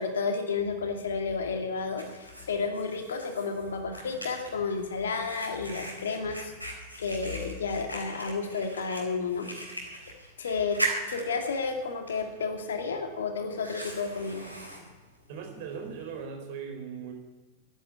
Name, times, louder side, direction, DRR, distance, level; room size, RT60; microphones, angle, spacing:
voice 1, 0.0-6.5 7.0-9.5 10.4-10.8 11.1-14.5, left 4 dB, 65° left, 4 dB, 2.4 m, -31 dB
Fire, 1.2-16.2, right 1 dB, 90° right, 3.5 m, -40 dB
voice 2, 15.3-17.1, right 6 dB, 50° right, 3 dB, 4.3 m, -39 dB
12.0 x 10.5 x 9.9 m, 1.2 s
figure-of-eight pair, 90°, 0 cm